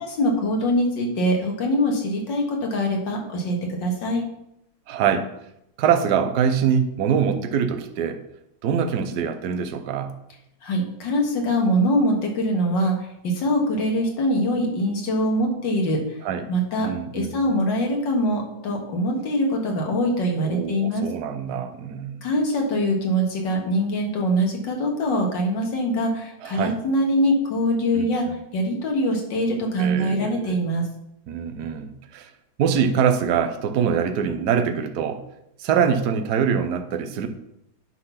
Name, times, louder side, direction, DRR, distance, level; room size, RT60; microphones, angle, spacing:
voice 1, 0.0-4.2 10.6-16.2 16.5-21.0 22.2-28.2 28.5-30.9, equal, 80° left, 1 dB, 2.2 m, -23 dB
voice 2, 4.9-5.3 5.8-8.2 8.6-10.1 16.2-16.5 16.8-17.4 20.4-22.3 26.4-26.7 27.9-28.4 29.8-30.6 31.3-32.3 32.6-35.2 35.6-37.3, right 7 dB, 65° right, 8 dB, 1.2 m, -24 dB
9.8 x 4.1 x 5.6 m, 0.80 s
omnidirectional pair, 2.0 m